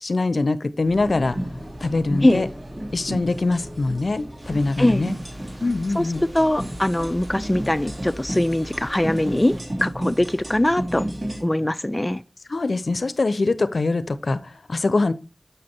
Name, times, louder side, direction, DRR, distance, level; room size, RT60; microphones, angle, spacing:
voice 1, 0.0-1.4 1.8-2.5 2.9-5.1 5.6-6.2 12.5-15.1, left 3 dB, 75° left, 0.5 m, -23 dB
sound 1, 0.8-11.4, equal, 50° right, 2.8 m, -32 dB
sound 2, 4.4-9.6, equal, 35° right, 4.0 m, -44 dB
voice 2, 6.3-11.1 11.4-12.2, left 1 dB, 20° left, 0.3 m, -21 dB
6.7 x 6.4 x 2.8 m
wide cardioid pair, 55°, 0 cm